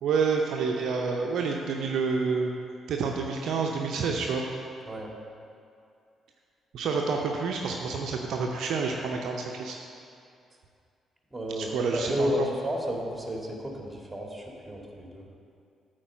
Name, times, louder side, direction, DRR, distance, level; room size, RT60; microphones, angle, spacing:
voice 1, 0.0-2.5 2.9-4.4 6.7-9.8 11.6-12.5, right 5 dB, 65° right, 1 dB, 0.6 m, -28 dB
voice 2, 11.3-15.3, equal, 15° right, -1 dB, 2.1 m, -32 dB
8.8 x 4.6 x 7.4 m, 2.4 s
hypercardioid pair, 45°, 0 cm